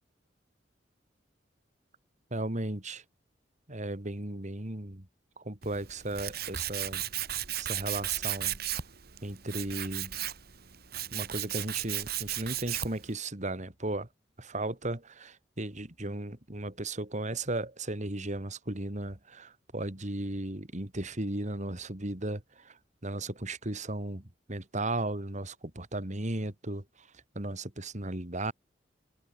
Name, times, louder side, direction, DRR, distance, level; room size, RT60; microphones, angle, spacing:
voice 1, 2.3-3.0 3.7-5.0 5.4-7.0 7.6-8.6 9.2-10.1 11.1-14.1 14.4-22.8 23.0-24.2 24.5-26.8 27.3-28.5, right 2 dB, 40° right, 2.9 m, -35 dB
Tools, 5.6-13.1, right 12 dB, 55° right, 2.1 m, -35 dB
head